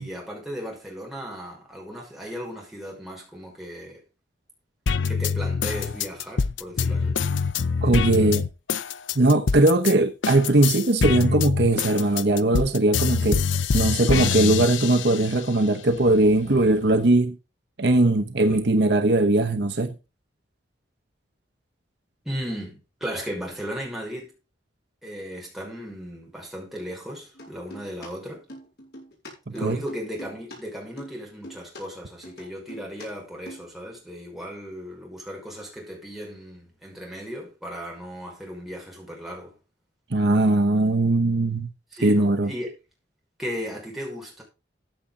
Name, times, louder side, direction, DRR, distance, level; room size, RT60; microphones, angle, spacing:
voice 1, 0.0-4.0 5.1-7.2 18.4-18.9 22.3-24.3 25.0-28.4 29.5-39.5 41.9-42.7 43.4-44.4, equal, ahead, 5.4 m, -36 dB
sound 1, 4.9-9.9 10.2-15.4 15.9-16.9, left 5 dB, 85° left, 0.6 m, -25 dB
voice 2, 7.8-8.4 9.1-13.4 13.7-17.4 17.8-19.9 29.6-29.8 40.1-41.7 42.0-42.5, right 2 dB, 60° right, 1.0 m, -20 dB
sound 2, 27.4-28.1 28.3-30.6 30.8-31.8 32.2-33.1 33.3-33.7, equal, 60° left, 6.8 m, -43 dB
14.5 x 8.6 x 3.8 m
head